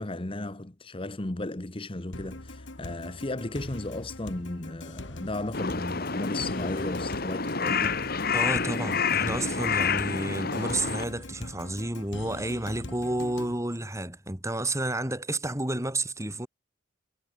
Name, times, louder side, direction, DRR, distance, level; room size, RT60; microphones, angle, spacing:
voice 1, 0.0-8.0, left 2 dB, 30° left, 1.2 m, -35 dB
sound 1, 2.1-13.5, left 2 dB, 80° left, 2.1 m, -42 dB
Crow, 5.5-11.0, left 5 dB, 55° left, 2.0 m, -28 dB
voice 2, 8.3-16.5, right 1 dB, 15° right, 4.3 m, -31 dB
head